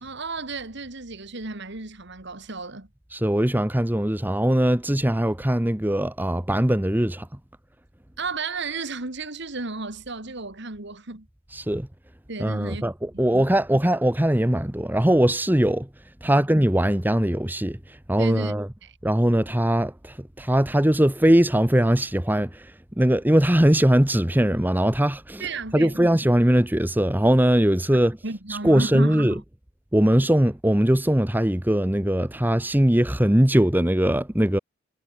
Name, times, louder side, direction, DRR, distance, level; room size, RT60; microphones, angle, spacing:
voice 1, 0.0-2.9 8.2-11.3 12.3-12.8 13.1-13.2 18.2-18.5 18.8-19.0 25.4-26.0 28.2-29.4, right 3 dB, 60° right, 2.2 m, -33 dB
voice 2, 3.1-7.3 11.5-11.9 12.4-15.9 16.2-18.7 19.0-22.7 23.0-25.5 25.7-28.2 28.6-29.4 29.9-34.6, right 1 dB, 10° right, 1.0 m, -21 dB
head